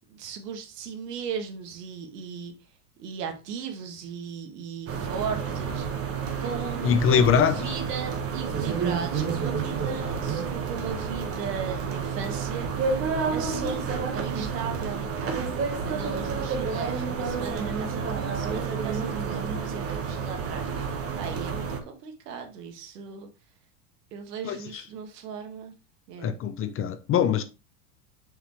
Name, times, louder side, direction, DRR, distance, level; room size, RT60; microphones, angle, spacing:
voice 1, 0.1-2.5 3.0-6.1 6.4-13.0 13.3-15.6 15.8-23.3 24.1-25.7 26.1-26.3, right 6 dB, 85° right, 1.8 m, -37 dB
sound 1, 4.9-21.8, right 5 dB, 30° right, 1.4 m, -30 dB
voice 2, 6.8-7.6 24.4-24.6 26.2-27.4, left 7 dB, 30° left, 0.6 m, -22 dB
6.5 x 5.1 x 3.1 m
supercardioid pair, 120°, 46 cm